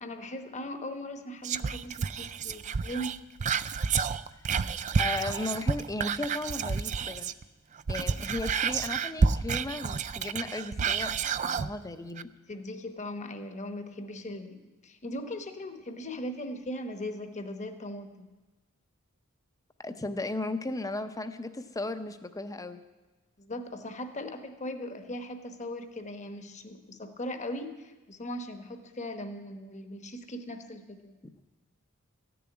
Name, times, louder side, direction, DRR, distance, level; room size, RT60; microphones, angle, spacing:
voice 1, 0.0-3.2 12.5-18.3 23.4-31.2, left 1 dB, 35° left, 7 dB, 1.1 m, -39 dB
Whispering, 1.4-7.4 7.8-11.7 12.2-12.3, right 5 dB, 35° right, 0.3 m, -30 dB
voice 2, 5.0-7.3 7.9-11.1 11.4-12.3 19.8-22.8, left 2 dB, 15° left, 9 dB, 0.7 m, -35 dB
14.5 x 7.0 x 9.7 m, 1.2 s
head